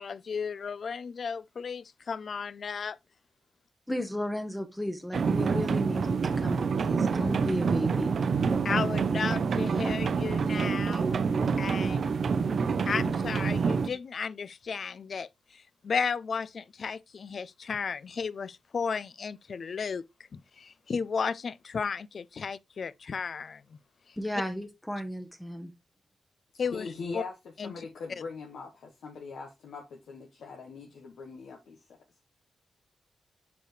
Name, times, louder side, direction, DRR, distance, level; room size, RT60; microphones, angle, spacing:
voice 1, 0.0-3.0 8.6-11.2 11.6-12.1 12.9-15.3 15.8-20.0 20.3-23.6 26.6-26.9 27.1-27.2 27.6-27.7, left 5 dB, 55° left, 0.4 m, -34 dB
voice 2, 3.9-8.1 24.2-25.7, equal, 5° left, 0.8 m, -34 dB
sound 1, 5.1-13.9, right 5 dB, 65° right, 0.5 m, -27 dB
voice 3, 26.7-31.8, left 4 dB, 85° left, 1.0 m, -41 dB
6.9 x 5.0 x 3.1 m
cardioid pair, 100°, 0 cm